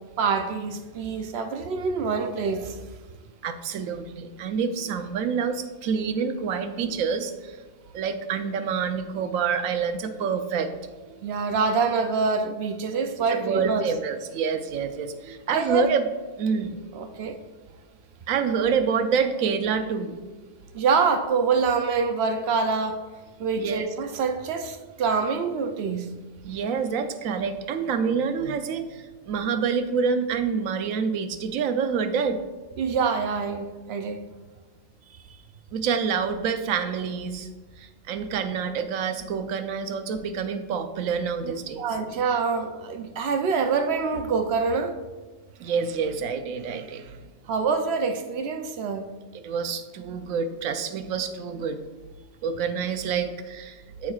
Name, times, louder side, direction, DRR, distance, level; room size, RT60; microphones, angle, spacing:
voice 1, 0.2-2.8 11.2-13.8 15.5-15.9 16.9-17.4 20.7-23.1 23.4-26.1 32.8-34.2 41.4-45.0 47.5-49.1, right 5 dB, 65° right, 0.7 m, -26 dB
voice 2, 3.4-7.6 7.9-10.7 11.1-11.2 13.3-16.1 16.4-16.8 18.3-20.2 23.6-23.9 26.4-32.4 35.7-37.5 37.8-41.8 45.6-47.2 49.3-51.8 52.4-54.1, right 6 dB, 80° right, 1.0 m, -27 dB
13.0 x 4.7 x 2.3 m
omnidirectional pair, 1.4 m